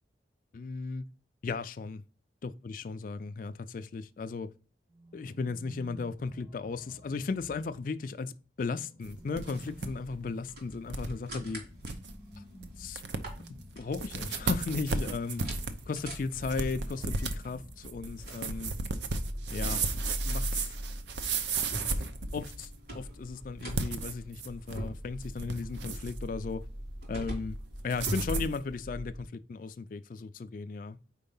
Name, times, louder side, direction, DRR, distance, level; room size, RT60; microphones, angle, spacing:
voice 1, 0.5-1.1 1.4-2.0 2.4-4.5 5.1-11.6 12.8-13.0 13.8-15.4 15.9-18.7 19.5-19.8 20.3-20.7 22.0-22.1 22.3-26.6 27.1-27.6 27.8-31.0, left 4 dB, 50° left, 0.3 m, -36 dB
sound 1, 4.9-8.2 8.9-15.5 16.5-18.4, right 1 dB, 20° right, 0.7 m, -54 dB
sound 2, 9.0-9.9 10.2-10.3 10.9-11.1 11.5-11.6 11.8-12.1 12.6-12.7 13.0-13.5 13.9-22.7 23.6-24.9 25.2-26.2 27.9-28.6, right 4 dB, 75° right, 0.7 m, -34 dB
sound 3, 9.4-29.3, equal, 55° right, 3.0 m, -42 dB
4.6 x 4.4 x 5.3 m
head